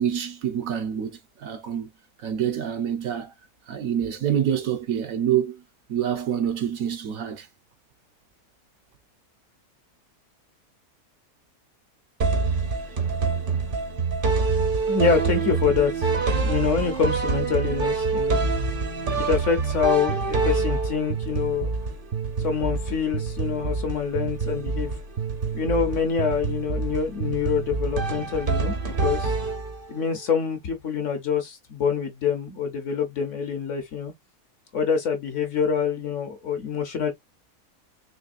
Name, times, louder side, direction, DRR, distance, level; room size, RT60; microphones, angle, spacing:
voice 1, 0.0-1.9 2.2-3.3 3.7-5.6 5.9-7.5, right 9 dB, 65° right, 1.1 m, -26 dB
sound 1, 12.2-30.0, right 4 dB, 45° right, 0.8 m, -26 dB
voice 2, 14.9-16.1 16.4-18.4 19.2-21.7 22.4-24.9 25.5-28.7 29.0-29.3 29.9-34.1 34.7-37.1, left 6 dB, 55° left, 1.0 m, -26 dB
4.1 x 3.2 x 2.5 m
omnidirectional pair, 1.7 m